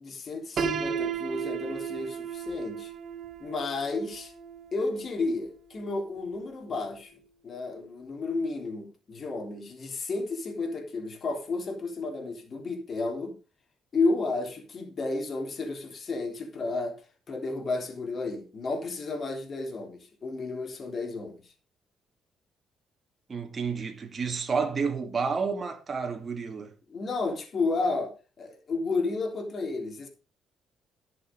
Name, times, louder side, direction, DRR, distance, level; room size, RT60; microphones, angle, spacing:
voice 1, 0.0-2.9 3.4-4.3 4.7-7.1 7.4-13.4 13.9-17.0 17.3-21.4 26.9-30.1, left 3 dB, 50° left, 3.5 m, -32 dB
Piano, 0.6-6.4, right 7 dB, 55° right, 1.8 m, -35 dB
voice 2, 23.3-26.7, right 5 dB, 35° right, 2.5 m, -30 dB
11.5 x 6.8 x 5.4 m
cardioid pair, 90°, 0 cm